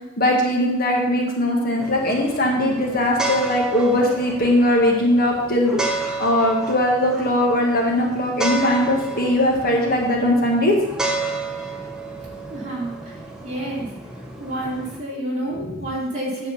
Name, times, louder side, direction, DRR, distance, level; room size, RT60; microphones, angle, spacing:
voice 1, 0.2-5.8 6.2-10.7 15.5-15.8, left 1 dB, 45° left, -1 dB, 1.6 m, -20 dB
sound 1, 1.8-15.0, right 3 dB, 5° right, 0.9 m, -31 dB
voice 2, 12.5-13.2 13.4-13.9 14.4-16.5, right 1 dB, 35° right, -5 dB, 2.7 m, -29 dB
9.4 x 4.3 x 7.0 m, 0.95 s
head